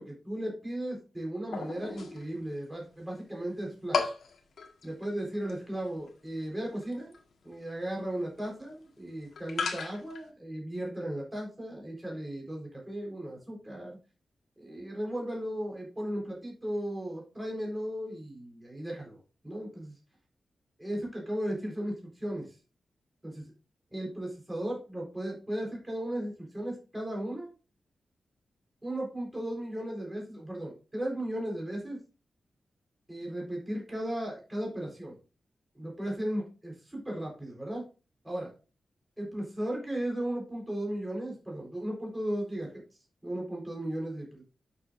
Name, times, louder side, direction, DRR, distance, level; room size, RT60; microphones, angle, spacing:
voice 1, 0.0-4.1 4.8-7.1 7.4-14.0 14.6-19.2 19.4-19.9 20.8-22.5 23.2-23.4 23.9-27.5 28.8-32.0 33.1-35.2 35.8-37.8 38.2-38.5 39.2-42.7 43.2-44.4, right 1 dB, 10° right, -2 dB, 4.0 m, -36 dB
sound 1, 1.5-2.6 2.9-3.0 3.4-3.5 3.9-10.3, left 5 dB, 80° left, 1.6 m, -35 dB
11.5 x 6.5 x 2.6 m, 0.33 s
wide cardioid pair, 130°, 0 cm